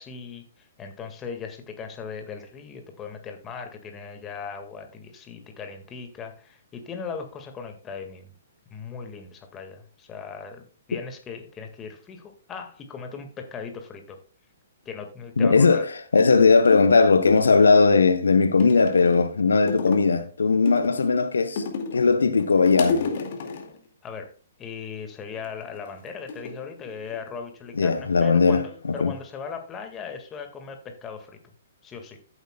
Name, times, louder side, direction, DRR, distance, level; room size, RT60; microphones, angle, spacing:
voice 1, 0.0-8.3 8.7-14.2 14.9-15.8 24.0-24.3 24.6-31.4 31.8-32.2, left 5 dB, 20° left, 1.9 m, -38 dB
voice 2, 15.4-21.6 21.9-23.0 27.8-28.6 29.0-29.1, left 4 dB, 80° left, 0.9 m, -18 dB
sound 1, 16.2-16.9 17.3-18.0 18.6-19.3 19.7-20.2 20.7-22.1 22.4-23.8 25.4-25.8 26.3-27.4 27.7-28.1, left 5 dB, 55° left, 2.2 m, -32 dB
14.5 x 8.2 x 2.3 m
figure-of-eight pair, 125°, 0 cm